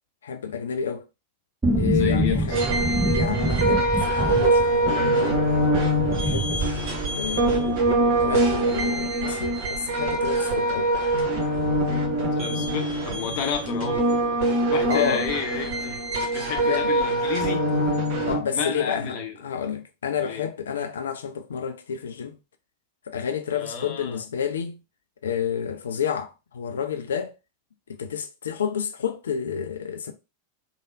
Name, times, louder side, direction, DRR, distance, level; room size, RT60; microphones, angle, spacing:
voice 1, 0.2-1.0 1.8-2.6 3.1-5.4 6.2-6.9 7.2-7.8 8.2-10.9 14.9-15.3 16.6-16.9 18.3-19.2 19.4-22.4 23.1-24.8 25.2-27.3 27.9-30.1, left 7 dB, 65° left, 0.3 m, -29 dB
sound 1, 1.6-10.5 10.7-10.8 11.1-12.1 12.4-12.5, right 2 dB, 10° right, 0.7 m, -28 dB
voice 2, 1.9-2.6 12.4-14.0 14.7-16.0 16.3-17.6 18.5-19.4 20.2-20.5 23.5-24.2, left 6 dB, 45° left, 0.7 m, -31 dB
sound 2, 2.5-18.4, right 1 dB, 45° right, 1.0 m, -24 dB
3.3 x 2.0 x 2.5 m
figure-of-eight pair, 90°, 0 cm